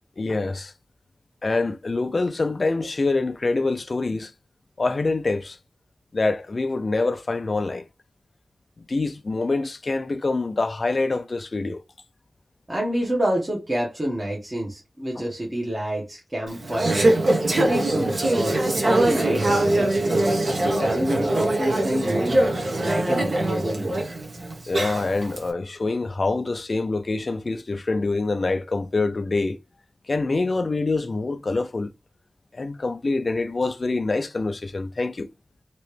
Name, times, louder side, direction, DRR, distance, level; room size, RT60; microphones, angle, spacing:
voice 1, 0.2-0.7 1.4-4.3 4.8-5.6 6.1-7.9 8.8-11.8 15.2-15.3 24.7-29.6 30.1-31.9 32.5-35.3, left 3 dB, 50° left, 0.3 m, -25 dB
voice 2, 12.7-17.2 17.6-20.2 20.8-22.4 22.8-24.0, right 1 dB, 25° right, 1.0 m, -28 dB
Conversation / Chatter, 16.5-25.4, right 1 dB, 55° right, 1.0 m, -22 dB
3.0 x 2.9 x 3.2 m
wide cardioid pair, 100°, 0 cm